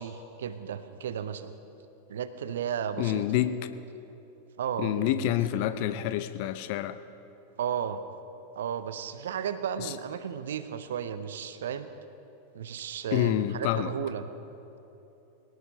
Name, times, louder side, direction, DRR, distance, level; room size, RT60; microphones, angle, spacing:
voice 1, 0.0-1.5 2.1-3.2 4.6-6.0 7.6-8.0 8.6-11.9 12.5-14.3, right 8 dB, 60° right, 12 dB, 0.7 m, -34 dB
voice 2, 3.0-3.7 4.8-7.0 9.8-9.9 13.1-13.9, left 13 dB, 45° left, 12 dB, 0.6 m, -28 dB
22.0 x 18.5 x 2.8 m, 3.0 s
figure-of-eight pair, 90°, 0 cm